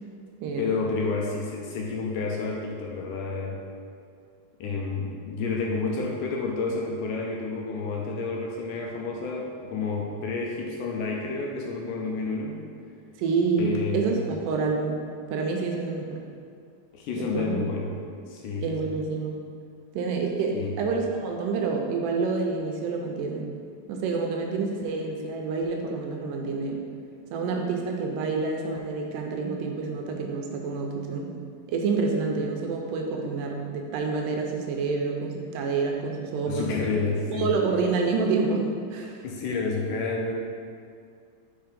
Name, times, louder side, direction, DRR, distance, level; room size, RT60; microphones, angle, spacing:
voice 1, 0.6-3.6 4.6-12.6 13.6-14.2 16.9-17.9 18.3-18.7 20.5-20.8 36.5-37.5 39.2-40.3, left 4 dB, 80° left, -1 dB, 2.0 m, -30 dB
voice 2, 13.2-15.0 15.3-16.2 17.2-17.6 18.6-19.4 19.9-23.5 23.9-26.8 27.3-31.3 31.7-36.7 37.3-38.7 38.9-39.3, right 4 dB, 80° right, 1 dB, 2.1 m, -28 dB
5.1 x 4.5 x 5.1 m, 2.3 s
omnidirectional pair, 4.0 m